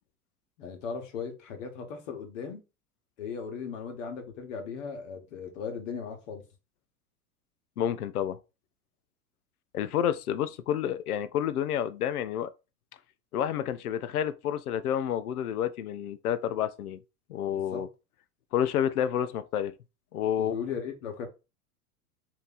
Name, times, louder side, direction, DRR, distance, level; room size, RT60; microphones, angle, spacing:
voice 1, 0.6-2.6 3.2-6.4 17.5-17.9 20.4-21.3, left 6 dB, 50° left, 1.2 m, -37 dB
voice 2, 7.8-8.4 9.7-12.5 13.3-17.0 17.3-17.9 18.5-19.7 20.1-20.6, left 9 dB, 70° left, 0.5 m, -29 dB
3.2 x 2.7 x 3.9 m
figure-of-eight pair, 90°, 46 cm